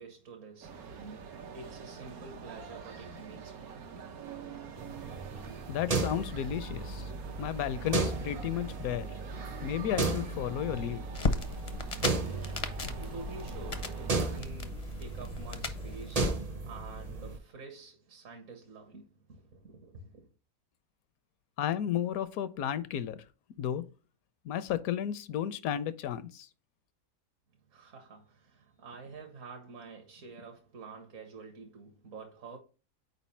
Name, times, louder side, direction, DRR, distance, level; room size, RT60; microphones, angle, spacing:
voice 1, 0.0-4.7 11.9-20.3 27.6-32.6, right 4 dB, 65° right, 1.4 m, -49 dB
sound 1, 0.6-14.4, right 6 dB, 80° right, 1.3 m, -46 dB
sound 2, 4.8-17.4, right 3 dB, 40° right, 0.6 m, -35 dB
voice 2, 5.7-7.1 7.4-9.1 9.6-11.0 21.6-23.2 23.6-23.8 24.4-26.5, left 10 dB, 80° left, 1.0 m, -33 dB
sound 3, 11.1-16.3, left 3 dB, 45° left, 0.5 m, -36 dB
4.6 x 4.1 x 5.5 m
omnidirectional pair, 1.5 m